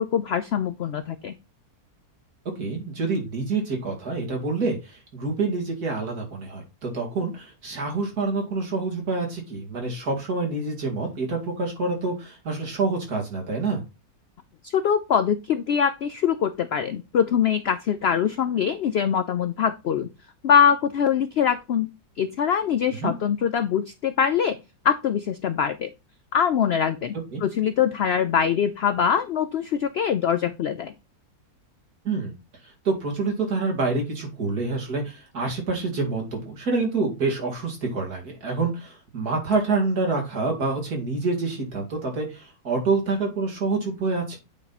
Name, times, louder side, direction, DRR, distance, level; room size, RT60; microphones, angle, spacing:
voice 1, 0.0-1.3 14.6-20.1 20.4-21.9 22.2-24.6 24.8-25.9 26.3-30.9, left 8 dB, 70° left, 11 dB, 0.6 m, -23 dB
voice 2, 2.6-13.8 23.0-23.1 27.3-27.4 32.0-32.3 32.8-44.4, right 3 dB, 75° right, 0 dB, 2.9 m, -27 dB
8.5 x 4.2 x 4.1 m, 0.26 s
omnidirectional pair, 1.6 m